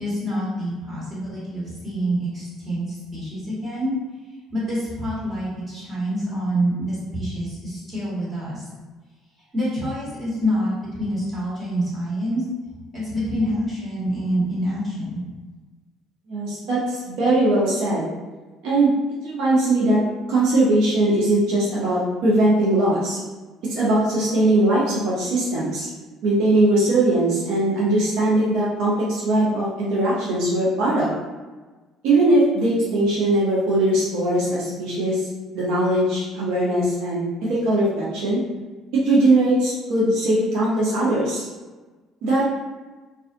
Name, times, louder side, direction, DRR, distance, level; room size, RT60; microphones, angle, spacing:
voice 1, 0.0-3.9 4.5-8.6 9.5-12.4 12.9-15.2, equal, 20° right, -9 dB, 1.4 m, -26 dB
voice 2, 16.3-18.1 18.6-18.9 19.2-20.0 20.3-23.2 23.7-25.9 26.2-31.1 32.0-35.2 35.5-37.2 37.5-38.4 38.9-41.4 42.2-42.4, right 1 dB, 80° right, -7 dB, 0.6 m, -20 dB
2.4 x 2.3 x 2.5 m, 1.3 s
cardioid pair, 110°, 0 cm